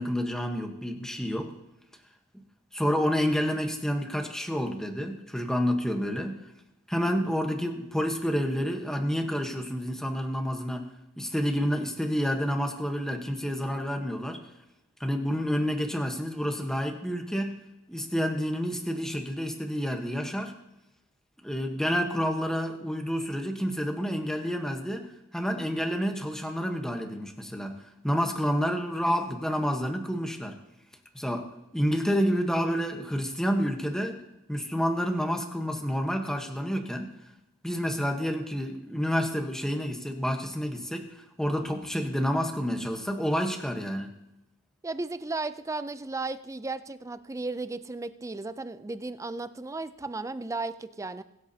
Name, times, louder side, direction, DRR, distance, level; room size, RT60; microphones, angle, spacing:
voice 1, 0.0-1.5 2.7-6.4 6.9-10.9 11.2-14.4 15.0-17.6 17.9-20.6 21.4-27.8 28.0-30.6 31.1-34.2 34.5-37.1 37.6-44.1, equal, 5° left, 3 dB, 1.2 m, -29 dB
voice 2, 44.8-51.2, right 3 dB, 15° right, 12 dB, 0.4 m, -35 dB
23.0 x 8.1 x 2.8 m, 0.89 s
head